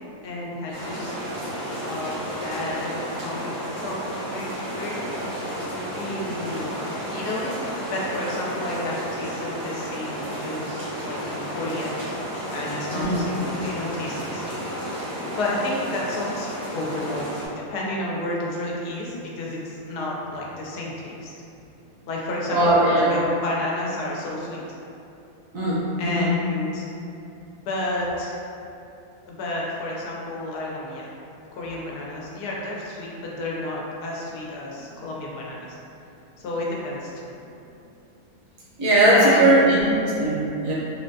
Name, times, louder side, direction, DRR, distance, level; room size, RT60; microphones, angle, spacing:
voice 1, 0.2-1.1 1.8-6.9 7.1-7.6 7.9-11.9 12.5-14.6 15.3-17.3 17.5-21.3 22.1-24.6 26.0-26.9 27.6-28.4 29.3-31.1 31.5-35.7 36.4-37.3 39.1-39.8, left 1 dB, 80° left, -4 dB, 1.2 m, -31 dB
sound 1, 0.7-17.5, equal, 80° right, 1.5 m, -32 dB
voice 2, 22.5-23.1 25.5-26.3 38.8-39.9 40.2-40.7, right 1 dB, 65° right, -7 dB, 1.0 m, -19 dB
3.6 x 2.1 x 2.6 m, 2.7 s
omnidirectional pair, 1.7 m